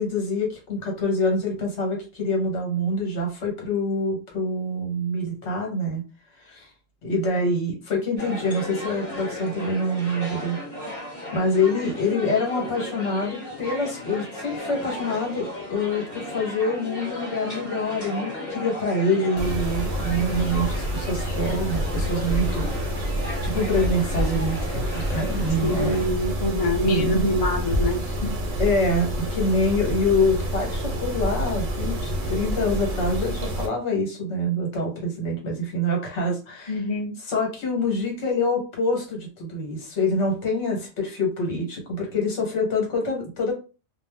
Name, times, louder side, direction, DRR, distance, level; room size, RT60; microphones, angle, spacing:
voice 1, 0.0-6.0 6.3-6.7 7.0-10.6 10.9-11.0 11.3-22.7 23.4-26.0 26.8-27.4 28.6-36.8 37.3-43.5, left 1 dB, 65° left, 0 dB, 1.2 m, -26 dB
sound 1, 8.2-26.1, left 1 dB, 15° left, 1.0 m, -35 dB
Mechanisms, 19.4-33.7, equal, 50° right, 0.6 m, -28 dB
voice 2, 25.6-28.1 36.7-37.1, left 1 dB, 40° left, 1 dB, 0.5 m, -25 dB
2.5 x 2.1 x 3.3 m, 0.33 s
omnidirectional pair, 1.3 m